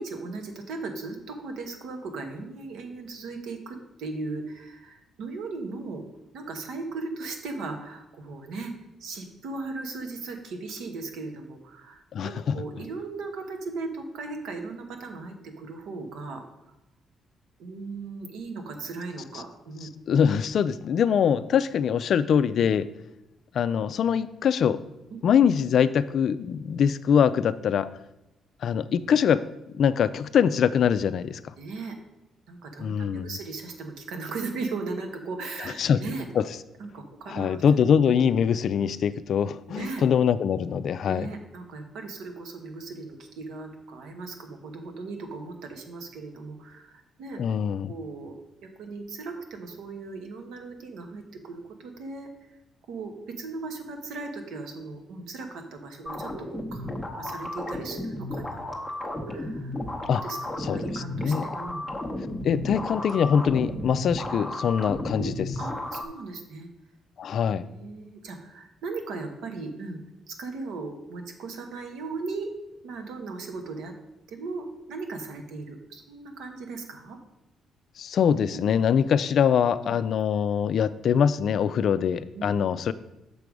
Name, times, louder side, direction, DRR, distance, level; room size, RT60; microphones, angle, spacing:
voice 1, 0.0-6.0 6.3-8.7 9.0-16.4 17.6-19.9 25.1-25.2 31.6-32.0 32.5-36.3 36.8-37.6 39.7-40.0 41.0-47.4 47.9-52.3 52.9-58.6 59.0-59.8 60.2-61.8 65.1-66.7 67.6-70.0 70.3-72.5 72.8-73.9 74.3-77.2 78.5-78.6 79.8-80.0 82.3-82.5, right 3 dB, 85° right, 4 dB, 1.1 m, -37 dB
voice 2, 12.1-12.6 20.1-22.9 23.5-24.8 25.2-27.9 28.6-29.4 29.8-31.4 32.8-33.3 35.8-36.0 36.4-36.5 37.3-41.3 47.4-47.9 60.1-60.2 60.6-61.4 62.4-65.5 67.2-67.6 78.0-82.9, left 7 dB, 60° left, 14 dB, 0.3 m, -23 dB
sound 1, 56.1-66.1, left 1 dB, ahead, 0.8 m, -33 dB
6.8 x 5.2 x 4.7 m, 0.91 s
cardioid pair, 135°, 0 cm